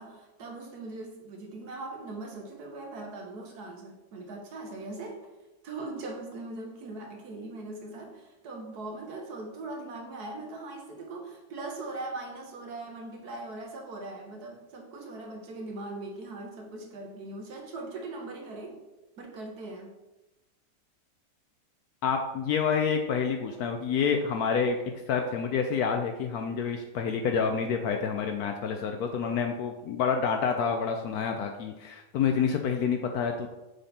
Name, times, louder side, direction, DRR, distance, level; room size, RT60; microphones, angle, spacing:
voice 1, 0.0-5.2 5.6-18.8 19.2-19.9, right 2 dB, 65° right, 2 dB, 1.4 m, -40 dB
voice 2, 22.0-24.8 25.1-33.5, left 6 dB, 70° left, 4 dB, 0.9 m, -28 dB
6.5 x 4.1 x 4.2 m, 1.0 s
omnidirectional pair, 1.9 m